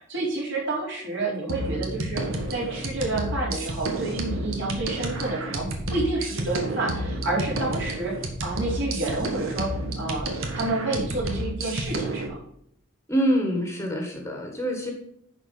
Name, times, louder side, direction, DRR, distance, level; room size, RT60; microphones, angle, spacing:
voice 1, 0.1-2.2 2.5-8.1 8.4-12.4, right 2 dB, 60° right, -4 dB, 4.0 m, -29 dB
sound 1, 1.5-12.3, right 1 dB, 85° right, 1.6 m, -31 dB
voice 2, 13.1-14.9, equal, 15° left, 1 dB, 1.4 m, -25 dB
10.5 x 4.5 x 5.4 m, 0.70 s
head